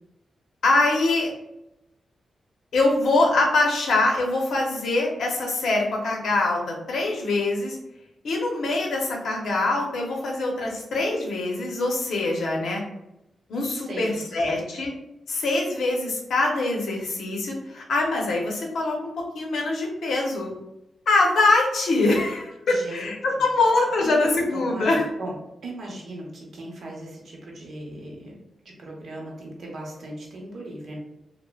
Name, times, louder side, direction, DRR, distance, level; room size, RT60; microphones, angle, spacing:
voice 1, 0.6-1.3 2.7-7.8 8.2-12.8 13.5-14.9 15.3-19.0 19.3-20.5 21.1-25.0, left 2 dB, 80° left, 0 dB, 0.7 m, -23 dB
voice 2, 13.7-14.5 22.7-23.5 24.0-25.4 25.6-31.0, right 1 dB, 60° right, -2 dB, 0.7 m, -38 dB
3.1 x 2.1 x 2.2 m, 0.89 s
wide cardioid pair, 150°, 0 cm